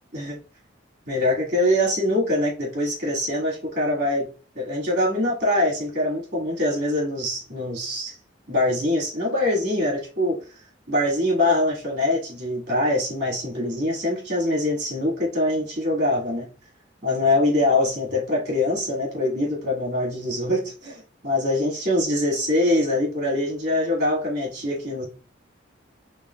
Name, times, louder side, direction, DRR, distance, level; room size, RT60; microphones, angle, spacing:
voice 1, 1.1-4.3 4.5-8.2 8.5-10.4 10.9-16.5 17.0-25.0, left 1 dB, 60° right, 1.8 m, -23 dB
5.3 x 3.5 x 2.3 m
head